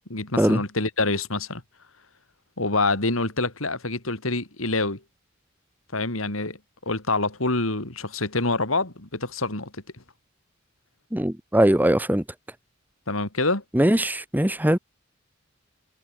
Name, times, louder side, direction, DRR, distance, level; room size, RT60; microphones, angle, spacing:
voice 1, 0.1-1.6 2.6-5.0 5.9-6.6 6.9-9.8 13.1-13.6, left 2 dB, 80° left, 4.6 m, -26 dB
voice 2, 11.1-12.2 13.7-14.8, right 1 dB, 10° right, 1.2 m, -21 dB
head